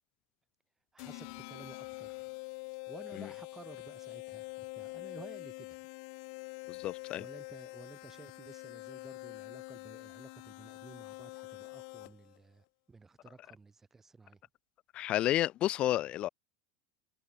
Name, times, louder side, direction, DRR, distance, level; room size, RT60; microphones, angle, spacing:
voice 1, 0.9-2.3 2.9-5.8 7.1-14.4, right 4 dB, 15° right, 5.3 m, -54 dB
sound 1, 1.0-12.4, left 33 dB, 65° left, 5.2 m, -45 dB
voice 2, 6.7-7.2 14.9-16.3, left 14 dB, 40° left, 1.0 m, -31 dB
supercardioid pair, 125°, 3 cm